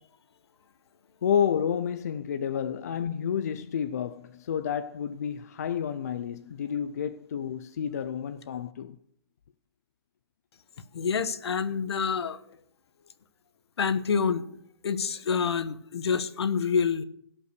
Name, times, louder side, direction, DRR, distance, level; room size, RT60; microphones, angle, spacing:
voice 1, 1.2-9.0, left 8 dB, 35° left, 0.4 m, -30 dB
voice 2, 10.9-12.4 13.8-14.5 14.8-17.0, left 6 dB, 70° left, 1.1 m, -27 dB
17.0 x 5.6 x 6.7 m
hypercardioid pair, 175°, 14 cm